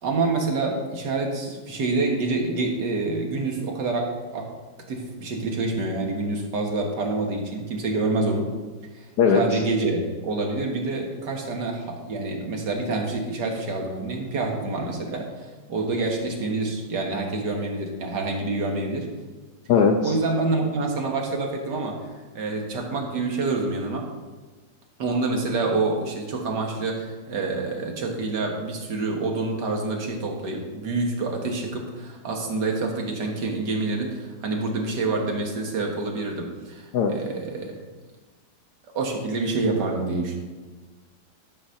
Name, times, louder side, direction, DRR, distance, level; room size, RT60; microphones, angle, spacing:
voice 1, 0.0-4.5 4.9-8.5 8.9-9.1 9.3-19.1 20.0-24.1 25.0-37.8 39.0-40.4, right 3 dB, 65° right, 1 dB, 2.1 m, -27 dB
voice 2, 9.2-9.6 19.7-20.1 36.9-37.1, left 5 dB, 65° left, 2 dB, 1.2 m, -19 dB
12.0 x 4.2 x 6.4 m, 1.3 s
omnidirectional pair, 2.0 m